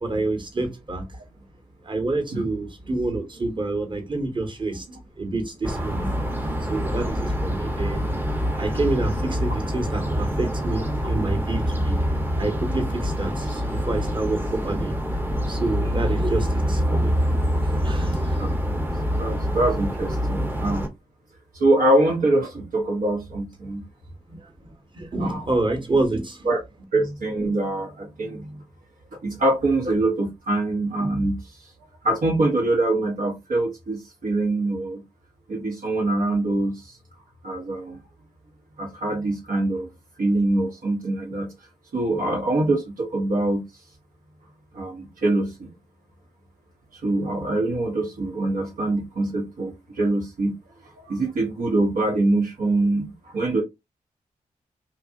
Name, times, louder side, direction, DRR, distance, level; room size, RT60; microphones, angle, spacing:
voice 1, 0.0-1.1 1.8-6.1 6.7-8.2 8.6-12.0 12.4-15.0 15.5-18.5 24.3-24.5 24.9-26.5, right 2 dB, 35° right, 1.1 m, -28 dB
sound 1, 5.6-20.9, equal, 15° right, 0.7 m, -25 dB
voice 2, 19.2-20.9 21.5-23.8 25.2-25.4 26.4-26.6 26.9-28.6 29.2-31.4 32.0-35.0 35.5-36.9 37.4-38.0 38.8-39.9 40.2-41.5 41.9-43.6 44.7-45.7 46.9-50.5 50.8-53.6, right 2 dB, 70° right, 0.9 m, -24 dB
2.7 x 2.4 x 2.4 m
supercardioid pair, 40°, 15 cm